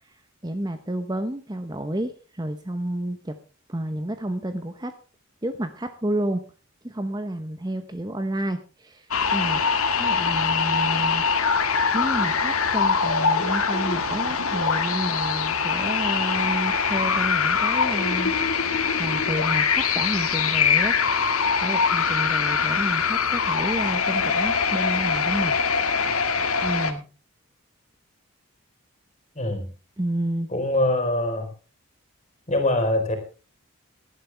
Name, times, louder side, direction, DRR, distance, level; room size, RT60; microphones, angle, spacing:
voice 1, 0.0-3.4 3.7-4.9 5.4-6.4 6.8-9.6 10.0-11.2 11.9-18.3 18.9-21.0 21.6-25.6 26.6-27.1 30.0-30.5, right 1 dB, 20° right, 9 dB, 0.9 m, -30 dB
sound 1, 9.1-26.9, left 5 dB, 80° left, 2.0 m, -23 dB
voice 2, 29.3-29.7 30.5-31.5 32.5-33.2, left 1 dB, 30° left, 6 dB, 4.2 m, -23 dB
18.0 x 12.0 x 3.4 m, 0.34 s
head